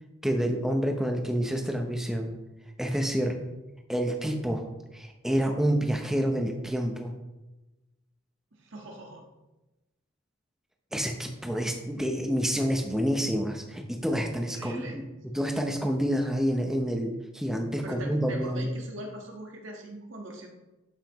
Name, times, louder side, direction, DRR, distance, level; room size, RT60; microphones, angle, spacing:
voice 1, 0.2-2.3 2.8-3.4 3.9-4.6 4.9-7.1 10.9-15.0 15.3-18.7, equal, ahead, 3 dB, 0.7 m, -28 dB
voice 2, 8.6-9.2 14.4-15.0 17.8-20.5, right 1 dB, 65° right, 1 dB, 1.5 m, -41 dB
11.5 x 5.7 x 3.1 m, 1.1 s
head